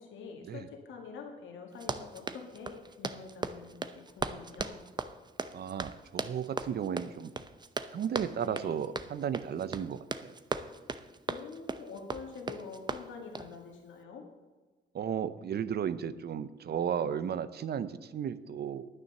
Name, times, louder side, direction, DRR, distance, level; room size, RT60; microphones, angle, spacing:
voice 1, 0.0-4.8 8.4-8.8 11.3-14.2, left 5 dB, 75° left, 2 dB, 2.0 m, -46 dB
Run, 1.7-13.5, right 3 dB, 20° right, 0.7 m, -38 dB
voice 2, 5.5-7.3 7.9-10.3 14.9-18.8, right 8 dB, 55° right, 14 dB, 0.7 m, -34 dB
9.7 x 9.4 x 6.7 m, 1.3 s
cardioid pair, 90°, 20 cm